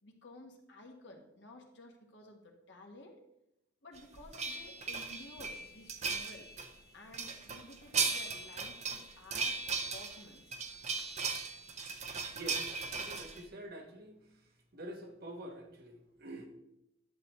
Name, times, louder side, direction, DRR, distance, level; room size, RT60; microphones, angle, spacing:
voice 1, 0.0-3.2 3.8-6.5 6.9-10.6, left 2 dB, 65° left, 2 dB, 1.4 m, -54 dB
sound 1, 4.0-6.7 7.1-13.4, right 4 dB, 35° right, 0.7 m, -37 dB
voice 2, 12.3-14.2 14.7-16.5, right 1 dB, 50° right, 3 dB, 1.2 m, -47 dB
11.0 x 6.8 x 3.0 m, 0.85 s
head